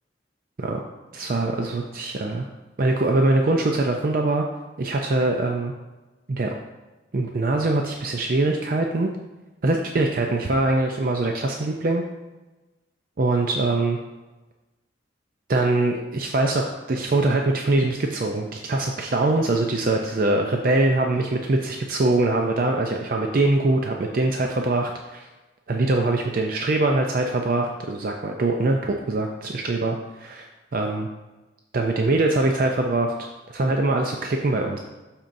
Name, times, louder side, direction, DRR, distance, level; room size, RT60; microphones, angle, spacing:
voice 1, 1.1-2.5 2.8-4.5 4.8-5.7 6.3-6.5 7.1-9.1 9.6-12.0 13.2-14.0 15.5-25.3 25.7-30.5 30.7-31.1 31.7-33.1 33.5-34.8, right 2 dB, 50° right, 2 dB, 0.5 m, -23 dB
12.5 x 4.4 x 2.6 m, 1.1 s
head